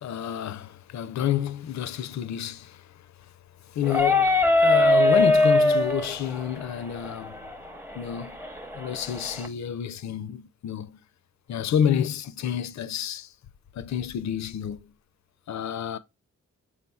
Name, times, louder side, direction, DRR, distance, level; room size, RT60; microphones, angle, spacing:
voice 1, 0.0-2.8 3.7-7.4 8.0-8.4 8.7-11.0 11.5-13.3 13.8-14.9 15.5-16.0, left 9 dB, 65° left, 0.4 m, -29 dB
sound 1, 3.8-9.5, left 1 dB, 5° right, 0.6 m, -23 dB
4.8 x 4.2 x 2.2 m
wide cardioid pair, 80°, 30 cm